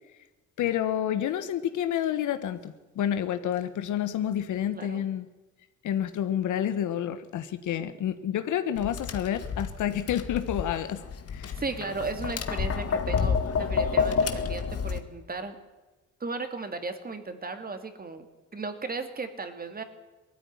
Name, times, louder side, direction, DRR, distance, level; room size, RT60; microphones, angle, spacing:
voice 1, 0.6-5.3 5.8-11.0 11.3-11.5, left 10 dB, 75° left, 11 dB, 1.5 m, -29 dB
voice 2, 4.7-5.0 11.6-15.6 16.2-18.3 18.5-19.8, right 3 dB, 30° right, 8 dB, 2.4 m, -35 dB
Tap, 8.8-15.0, left 6 dB, 50° left, 1.8 m, -29 dB
19.0 x 13.5 x 9.9 m, 1.2 s
cardioid pair, 90°, 30 cm